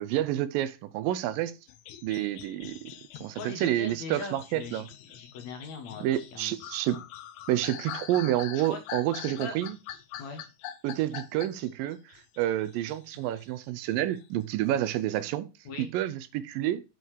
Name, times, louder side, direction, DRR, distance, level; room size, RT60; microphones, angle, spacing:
voice 1, 0.0-1.5 2.0-2.8 3.2-4.9 6.0-7.0 7.5-9.8 10.8-15.5 15.8-16.8, right 13 dB, 80° right, 2.3 m, -29 dB
sound 1, 1.7-13.5 13.9-15.2, left 11 dB, 80° left, 1.7 m, -44 dB
voice 2, 3.4-6.0 6.3-7.0 8.6-8.8 9.2-9.6 10.2-10.4 15.7-15.9, left 4 dB, 60° left, 2.2 m, -41 dB
7.5 x 5.4 x 4.7 m
omnidirectional pair, 4.1 m